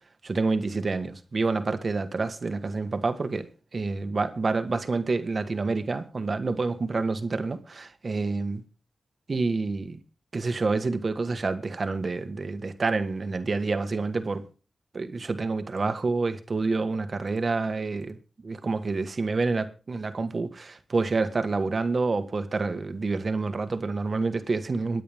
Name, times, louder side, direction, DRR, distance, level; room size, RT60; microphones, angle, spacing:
voice 1, 0.2-8.6 9.3-10.0 10.3-14.4 14.9-18.2 18.4-25.0, right 3 dB, 55° right, 1.6 m, -28 dB
22.0 x 9.4 x 3.6 m
cardioid pair, 55°, 0 cm